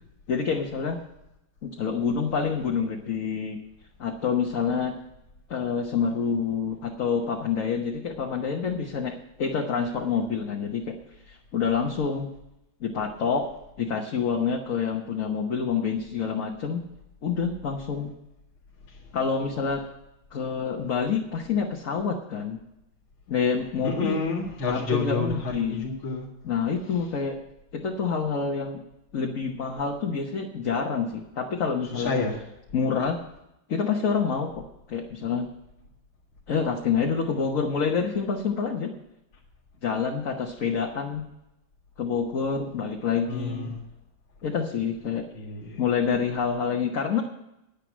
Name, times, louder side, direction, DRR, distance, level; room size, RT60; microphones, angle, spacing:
voice 1, 0.3-1.0 1.6-3.6 4.0-4.9 5.5-10.9 11.3-12.3 12.8-13.5 13.8-16.8 17.2-18.1 19.1-19.8 20.3-22.6 23.3-24.2 24.7-25.9 26.4-27.4 27.7-28.8 29.1-32.1 32.7-33.2 33.7-34.6 34.9-35.5 36.5-38.9 39.8-41.2 42.0-43.7 44.4-45.2 45.8-47.2, left 6 dB, 50° left, 1 dB, 1.3 m, -27 dB
voice 2, 23.8-26.3 31.9-32.4 43.3-43.8 45.3-45.8, left 4 dB, 85° left, -8 dB, 3.0 m, -29 dB
10.5 x 10.0 x 6.1 m, 0.87 s
omnidirectional pair, 2.2 m